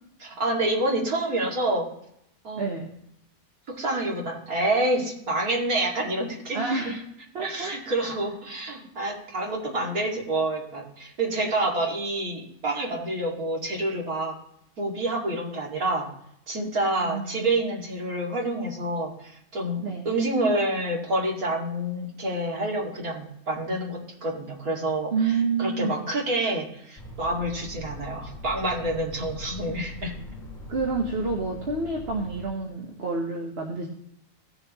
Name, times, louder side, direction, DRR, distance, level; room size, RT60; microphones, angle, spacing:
voice 1, 0.2-1.9 2.4-2.7 3.7-6.9 7.4-14.4 14.8-16.1 16.5-30.1, right 1 dB, 80° right, -2 dB, 2.8 m, -28 dB
voice 2, 2.6-2.9 6.5-7.0 7.3-7.8 17.0-17.5 19.8-20.1 25.1-26.0 30.7-33.9, right 4 dB, 45° right, 1 dB, 1.3 m, -28 dB
sound 1, 27.0-32.5, left 1 dB, 30° left, 2.3 m, -41 dB
17.5 x 6.9 x 3.0 m, 0.77 s
omnidirectional pair, 1.5 m